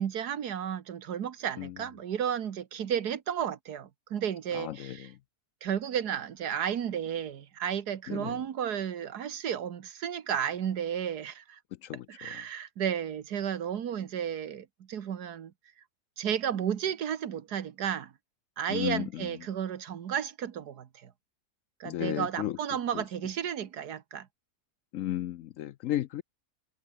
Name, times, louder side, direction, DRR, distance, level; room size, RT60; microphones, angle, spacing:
voice 1, 0.0-5.1 5.6-11.6 12.1-15.5 16.2-18.1 18.6-21.1 21.8-24.3, right 9 dB, 80° right, 1.8 m, -33 dB
voice 2, 4.5-5.2 8.1-8.4 11.8-12.4 18.7-19.3 21.8-22.6 22.9-23.0 24.9-26.2, left 13 dB, 70° left, 0.8 m, -34 dB
omnidirectional pair, 1.7 m